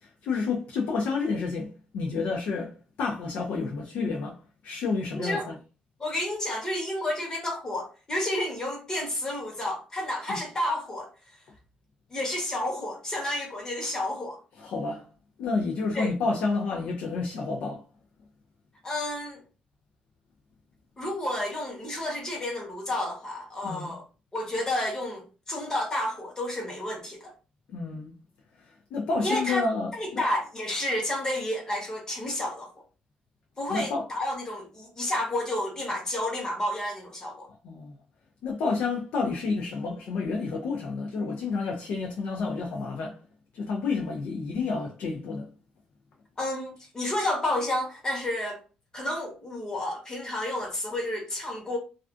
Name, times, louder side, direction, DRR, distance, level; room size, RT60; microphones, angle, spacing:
voice 1, 0.0-4.4 4.6-5.6 10.3-10.4 14.6-15.1 15.4-17.8 23.6-23.9 27.7-28.1 28.9-30.2 33.7-34.1 37.6-37.9 38.4-43.2 43.5-45.5, left 4 dB, 70° left, 0.4 m, -30 dB
voice 2, 5.1-5.5 6.0-11.1 12.1-14.4 15.9-16.1 18.8-19.4 21.0-24.0 24.3-27.3 29.2-29.7 29.9-32.7 33.6-37.5 46.4-48.6 48.9-51.8, left 1 dB, 25° left, 0.9 m, -30 dB
2.4 x 2.3 x 2.4 m
cardioid pair, 140°, 3 cm